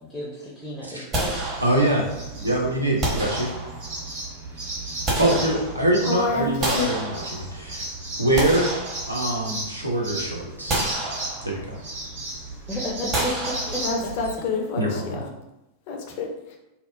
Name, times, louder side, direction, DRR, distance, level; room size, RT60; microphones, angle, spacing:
voice 1, 0.0-1.4 5.2-5.5 12.7-13.8, equal, 5° left, -6 dB, 0.5 m, -32 dB
sound 1, 1.1-2.2 3.0-4.1 4.7-6.1 6.6-7.7 8.1-9.6 10.0-10.1 10.7-11.8 13.1-14.2, right 1 dB, 30° right, 0.9 m, -29 dB
sound 2, 1.3-14.3, right 2 dB, 60° right, 1.5 m, -35 dB
voice 2, 1.6-2.0 2.4-3.5 5.2-7.9 8.2-8.7 9.1-10.8 11.4-11.8 14.8-15.2, right 1 dB, 85° right, -1 dB, 0.4 m, -24 dB
voice 3, 6.0-6.9 13.7-15.3 15.9-16.6, left 4 dB, 50° left, 2 dB, 0.4 m, -28 dB
2.8 x 2.1 x 2.3 m, 0.94 s
figure-of-eight pair, 90°, 0 cm